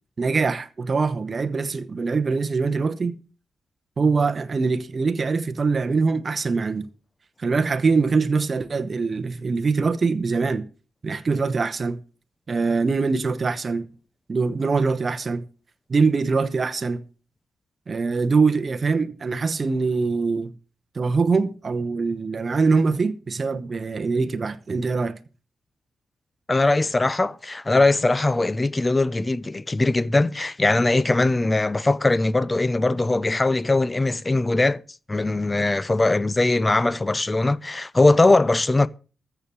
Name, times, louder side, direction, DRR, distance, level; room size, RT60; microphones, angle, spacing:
voice 1, 0.2-3.2 4.0-6.9 7.4-10.6 11.0-12.0 12.5-13.8 14.3-15.4 15.9-17.0 17.9-20.5 20.9-25.1, right 4 dB, 35° right, 1.0 m, -23 dB
voice 2, 26.5-34.8 35.1-38.9, left 2 dB, 20° left, 0.6 m, -20 dB
14.0 x 7.0 x 6.2 m
wide cardioid pair, 130°, 0 cm